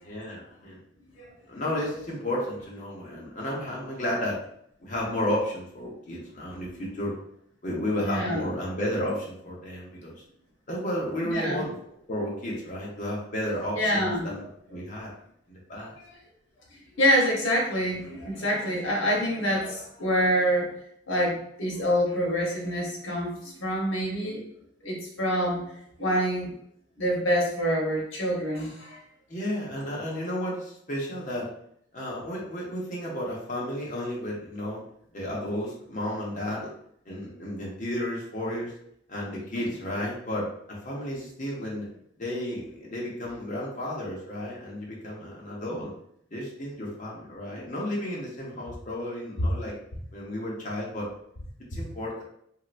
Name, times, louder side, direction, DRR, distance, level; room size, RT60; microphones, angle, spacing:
voice 1, 0.0-0.8 1.5-4.4 4.8-7.1 7.6-10.1 10.7-11.7 12.1-15.1 15.5-15.9 29.3-31.5 31.9-34.8 35.1-36.7 37.1-38.7 39.1-41.9 42.2-45.9 46.3-49.7 50.1-51.1 51.7-52.2, left 1 dB, 40° left, -4 dB, 0.9 m, -32 dB
voice 2, 8.0-8.4 11.2-11.7 13.8-14.4 15.9-16.0 17.0-20.7 21.1-24.4 24.8-25.7 26.0-26.5 27.0-29.0 47.5-47.6, equal, 85° left, -2 dB, 1.1 m, -26 dB
3.2 x 2.8 x 2.5 m, 0.69 s
head